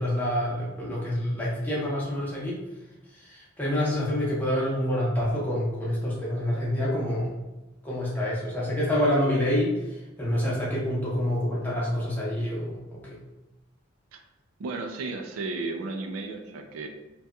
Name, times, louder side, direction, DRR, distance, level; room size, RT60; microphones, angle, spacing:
voice 1, 0.0-2.6 3.2-7.3 7.8-13.2, left 1 dB, 10° left, -7 dB, 0.6 m, -27 dB
voice 2, 14.6-16.9, right 3 dB, 85° right, 4 dB, 0.4 m, -34 dB
2.7 x 2.3 x 2.3 m, 1.0 s
head